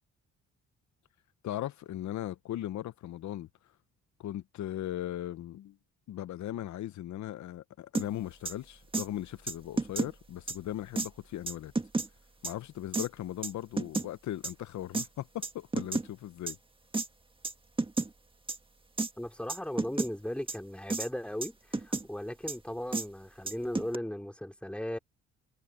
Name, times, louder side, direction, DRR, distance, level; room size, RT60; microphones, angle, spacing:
voice 1, 1.4-3.5 4.2-5.8 6.1-11.7 12.4-16.6, left 13 dB, 70° left, 0.9 m, -38 dB
sound 1, 7.9-8.1 8.4-8.5 8.9-9.1 9.5-10.1 10.5-10.6 11.0-11.1 11.5-12.1 12.4-12.5 12.9-13.1 13.4-14.1 14.4-14.5 14.9-15.1 15.4-16.1 16.5-16.6 16.9-17.1 17.4-17.5 17.8-18.1 18.5-18.6 19.0-19.1 19.5-20.1 20.5-20.6 20.9-21.1 21.4-22.0 22.5-22.6 22.9-23.0 23.5-24.0, right 3 dB, 15° right, 1.8 m, -31 dB
voice 2, 19.2-25.0, left 1 dB, 5° left, 3.3 m, -37 dB
cardioid pair, 90°, 30 cm